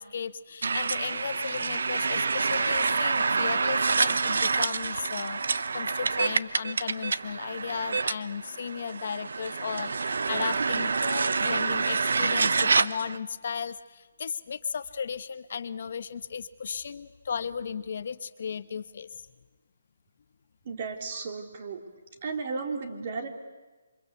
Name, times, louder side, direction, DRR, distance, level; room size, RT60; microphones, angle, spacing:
voice 1, 0.0-19.2, left 6 dB, 50° left, 12 dB, 1.1 m, -35 dB
sound 1, 0.6-13.2, right 4 dB, 70° right, 1.0 m, -27 dB
voice 2, 20.7-21.8 22.2-23.3, right 4 dB, 40° right, 5 dB, 3.5 m, -34 dB
28.0 x 25.5 x 8.2 m, 1.2 s
hypercardioid pair, 165°, 0 cm